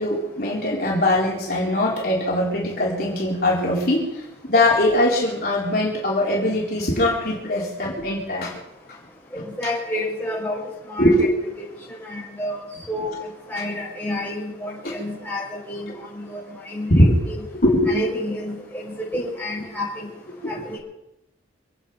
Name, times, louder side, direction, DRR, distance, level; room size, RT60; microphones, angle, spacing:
voice 1, 0.0-4.0 4.5-8.6 11.0-11.3 16.9-17.1 17.6-17.9 20.4-20.5, left 1 dB, 55° left, -4 dB, 4.1 m, -21 dB
voice 2, 9.6-11.3 11.6-11.7 12.0-12.6 12.9-13.1 13.5-17.3 17.9-20.1 20.5-20.8, left 1 dB, 10° left, -6 dB, 5.9 m, -30 dB
27.0 x 9.1 x 5.7 m, 0.92 s
head